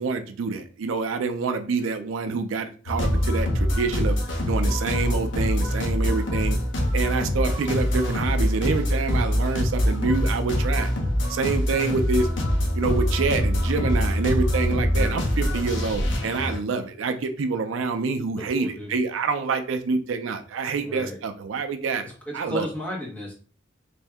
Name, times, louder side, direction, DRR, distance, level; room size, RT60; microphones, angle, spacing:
voice 1, 0.0-4.2 4.5-6.6 6.9-10.9 11.3-12.3 12.7-22.7, right 4 dB, 75° right, 7 dB, 0.4 m, -27 dB
sound 1, 2.9-16.6, equal, 60° left, 0.7 m, -24 dB
voice 2, 18.4-18.9 20.8-21.2 22.0-23.3, equal, 10° left, -4 dB, 1.2 m, -34 dB
3.3 x 2.7 x 3.3 m, 0.40 s
head